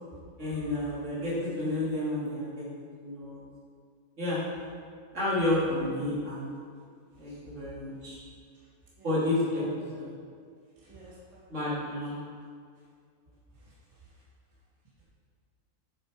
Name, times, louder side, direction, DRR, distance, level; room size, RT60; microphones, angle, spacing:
voice 1, 0.4-2.6 3.0-3.4 4.2-4.4 5.1-6.5 7.2-8.2 9.0-9.6 10.0-10.1 11.5-12.2, left 1 dB, 50° right, -8 dB, 2.8 m, -30 dB
voice 2, 10.8-11.5 13.6-13.7, right 1 dB, 20° right, -8 dB, 1.9 m, -52 dB
8.3 x 7.1 x 4.9 m, 2.2 s
omnidirectional pair, 1.6 m